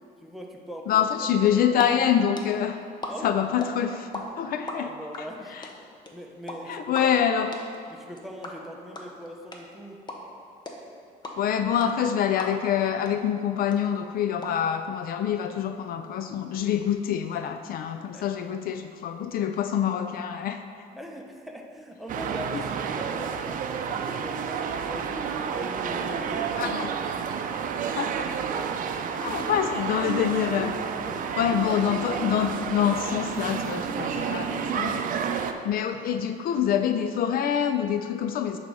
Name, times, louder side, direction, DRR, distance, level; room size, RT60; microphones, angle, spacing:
voice 1, 0.2-1.8 3.1-3.4 4.7-5.6 6.1-7.1 7.9-10.0 18.1-18.2 21.0-26.7 28.5-29.6 31.1-31.3 34.9-35.5, equal, ahead, 1 dB, 0.8 m, -41 dB
voice 2, 0.9-2.8 3.2-4.9 5.5-5.7 6.7-7.5 11.4-20.6 22.5-22.6 26.6-26.9 28.0-28.2 29.2-30.8 31.4-35.0 35.7-38.6, left 9 dB, 60° left, 8 dB, 0.4 m, -26 dB
sound 1, 1.8-1.9 2.1-4.2 4.5-12.8 13.1-13.2 13.4-14.5, left 3 dB, 25° left, 0.9 m, -38 dB
sound 2, 22.1-35.5, right 7 dB, 55° right, 0.5 m, -30 dB
9.6 x 4.1 x 4.8 m, 2.3 s
cardioid pair, 110°, 17 cm